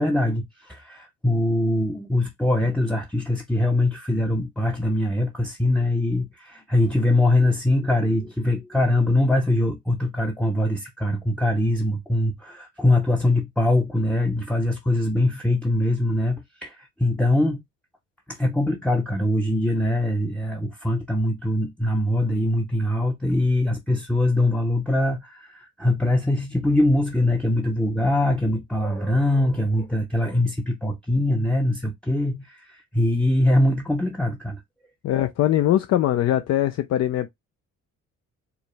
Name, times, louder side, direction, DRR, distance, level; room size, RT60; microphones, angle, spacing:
voice 1, 0.0-16.4 16.6-17.6 18.3-34.6, left 1 dB, 5° left, 0.6 m, -22 dB
voice 2, 35.0-37.3, left 12 dB, 60° left, 0.4 m, -21 dB
4.7 x 2.1 x 3.2 m
cardioid pair, 90°, 30 cm